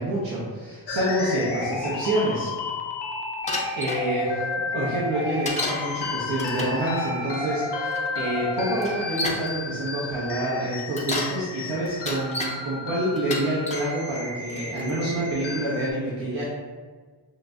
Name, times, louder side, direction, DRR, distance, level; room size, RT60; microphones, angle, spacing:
voice 1, 0.0-2.5 3.4-4.5 4.7-16.5, right 1 dB, 75° right, -8 dB, 1.0 m, -27 dB
sound 1, 0.9-15.9, left 3 dB, 65° left, 0.6 m, -32 dB
Bicycle, 3.5-4.0 5.4-5.8 6.3-6.8 7.9-8.0 8.8-9.5 10.8-11.4 11.9-12.5 13.2-13.9 14.5-14.9, left 2 dB, 15° left, 0.5 m, -30 dB
5.9 x 2.5 x 2.3 m, 1.5 s
wide cardioid pair, 115°, 44 cm